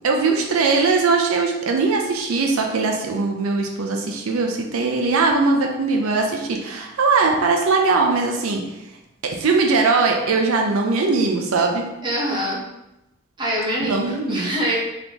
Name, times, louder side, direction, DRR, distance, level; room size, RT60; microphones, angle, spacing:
voice 1, 0.0-8.6 9.2-11.8 13.8-14.5, right 4 dB, 80° right, 1 dB, 0.5 m, -20 dB
voice 2, 12.0-12.6 13.4-14.8, right 1 dB, 20° right, -5 dB, 0.9 m, -24 dB
4.1 x 3.4 x 2.9 m, 0.92 s
head